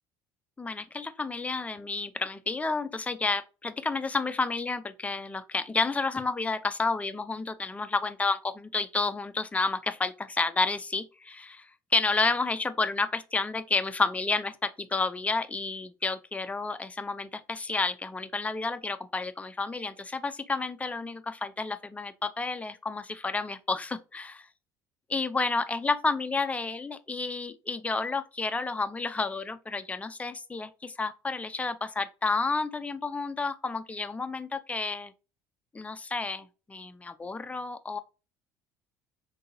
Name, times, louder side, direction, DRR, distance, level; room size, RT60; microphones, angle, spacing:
voice 1, 0.6-11.6 11.9-24.5 25.1-35.1 35.7-38.0, left 3 dB, 15° left, 0.4 m, -30 dB
3.7 x 2.7 x 2.5 m
hypercardioid pair, 60°, 10 cm